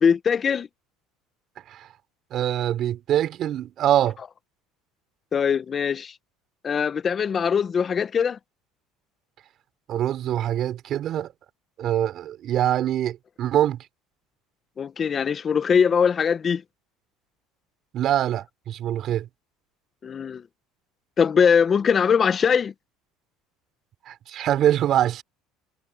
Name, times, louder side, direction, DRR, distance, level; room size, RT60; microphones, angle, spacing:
voice 1, 0.0-0.7 5.3-6.1 6.6-8.4 14.8-16.6 20.0-20.4 21.2-22.7, left 6 dB, 35° left, 1.4 m, -21 dB
voice 2, 2.3-4.2 9.9-11.3 11.8-13.8 17.9-19.3 24.1-25.2, right 11 dB, 50° right, 3.8 m, -24 dB
supercardioid pair, 100°, 0 cm